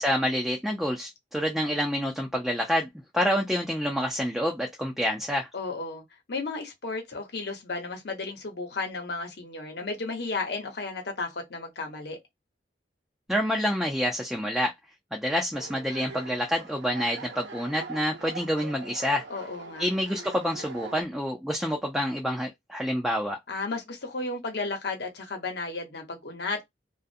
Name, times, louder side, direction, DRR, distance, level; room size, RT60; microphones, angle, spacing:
voice 1, 0.0-2.9 3.1-5.5 13.3-14.7 15.1-19.2 19.8-23.4, equal, ahead, 0.4 m, -27 dB
voice 2, 5.5-6.0 6.3-12.2 19.3-19.9 23.5-26.6, left 3 dB, 65° left, 0.9 m, -33 dB
sound 1, 15.5-21.0, right 4 dB, 80° right, 0.7 m, -42 dB
2.4 x 2.1 x 2.6 m
head